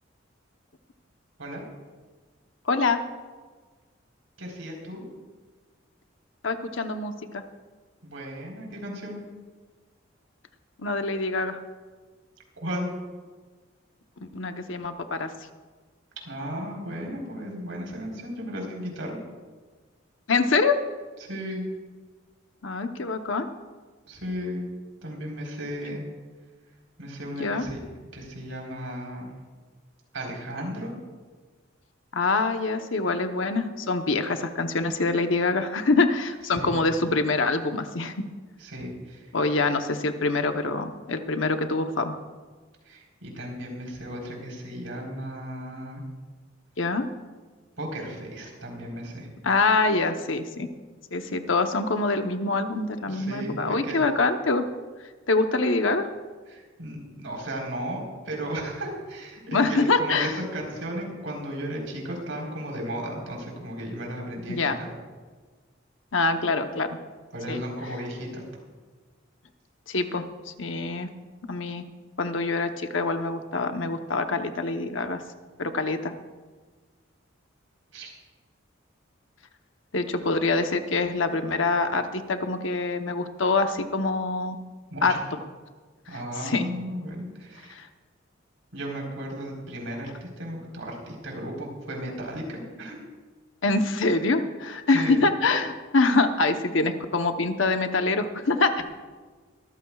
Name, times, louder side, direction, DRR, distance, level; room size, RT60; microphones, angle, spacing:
voice 1, 2.7-3.0 6.4-7.4 10.8-11.6 14.2-15.3 20.3-20.8 22.6-23.5 27.4-27.7 32.1-38.1 39.3-42.2 46.8-47.1 49.4-50.7 51.1-54.6 55.3-56.1 59.5-60.4 64.5-64.8 66.1-66.9 67.5-67.6 69.9-71.1 71.5-71.8 72.2-75.2 75.6-76.1 79.9-84.6 85.0-85.4 86.4-86.7 87.7-87.9 93.6-98.8, left 3 dB, 70° left, 7 dB, 1.0 m, -25 dB
voice 2, 4.4-5.0 8.0-9.2 12.6-12.9 16.2-19.2 21.2-21.6 24.1-24.6 25.0-26.0 27.0-27.8 28.1-29.3 30.1-30.9 36.5-36.7 38.6-39.3 42.8-46.0 47.8-49.3 53.1-54.0 56.5-64.9 67.3-68.4 77.9-78.1 84.9-85.2 86.1-87.8 88.7-93.0 94.9-95.2, equal, 80° right, -1 dB, 4.2 m, -35 dB
23.5 x 14.5 x 2.4 m, 1.4 s
head